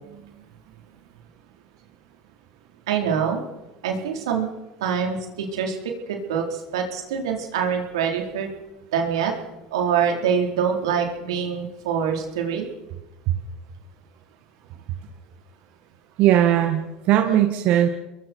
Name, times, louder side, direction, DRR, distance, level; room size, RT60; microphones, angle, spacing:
voice 1, 2.9-3.4 3.8-4.5 4.8-5.8 6.1-8.5 8.9-9.3 9.7-12.7, right 7 dB, 90° right, 2 dB, 4.5 m, -25 dB
voice 2, 16.2-17.9, right 11 dB, 60° right, 5 dB, 1.8 m, -19 dB
29.0 x 22.0 x 4.7 m, 1.0 s
supercardioid pair, 95°, 3 cm